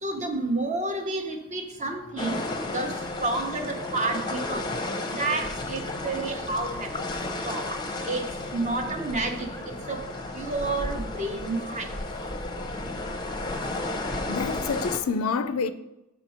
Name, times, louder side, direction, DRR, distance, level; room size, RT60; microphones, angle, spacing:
voice 1, 0.0-2.4 2.7-4.7 5.1-6.9 7.4-7.7 8.0-8.3 8.5-9.5 9.9-10.0 10.3-11.9, right 2 dB, 35° right, 0.9 m, -30 dB
sound 1, 2.2-15.0, left 2 dB, 20° left, 0.7 m, -33 dB
voice 2, 14.3-15.7, left 5 dB, 75° left, 0.4 m, -28 dB
6.5 x 4.3 x 5.7 m
head